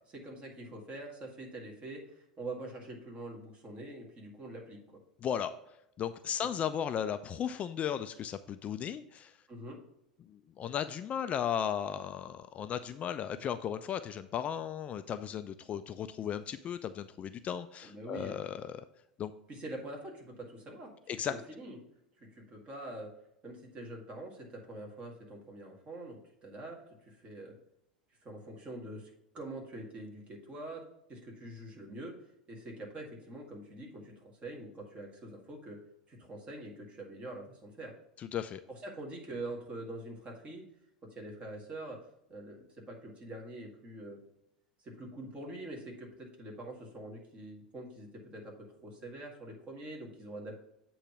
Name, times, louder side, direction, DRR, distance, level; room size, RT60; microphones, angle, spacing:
voice 1, 0.1-5.0 9.5-9.8 17.8-18.4 19.5-20.9 21.2-21.8 22.2-23.1 23.4-27.5 28.2-30.8 31.1-32.1 32.5-35.8 36.1-37.9 38.7-40.6 41.0-42.0 42.3-44.2 44.8-50.6, right 1 dB, 30° right, 0 dB, 2.1 m, -45 dB
voice 2, 6.0-9.3 10.3-18.8 19.2-19.3 21.1-21.3 38.2-38.6, left 9 dB, 30° left, 10 dB, 0.3 m, -35 dB
8.1 x 3.1 x 5.9 m, 0.81 s
figure-of-eight pair, 80°, 4 cm